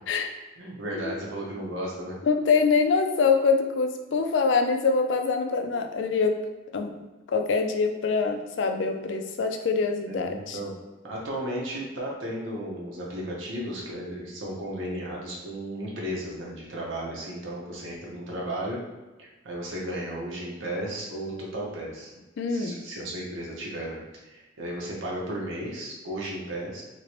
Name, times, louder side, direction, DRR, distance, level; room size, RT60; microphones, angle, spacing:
voice 1, 0.6-2.2 10.1-10.7 11.0-18.8 19.2-22.1 22.5-24.0 24.2-26.8, right 1 dB, 85° right, -3 dB, 1.0 m, -34 dB
voice 2, 2.2-6.4 6.7-10.6 22.4-22.8, left 4 dB, 65° left, 5 dB, 0.4 m, -24 dB
2.9 x 2.9 x 3.0 m, 1.1 s
head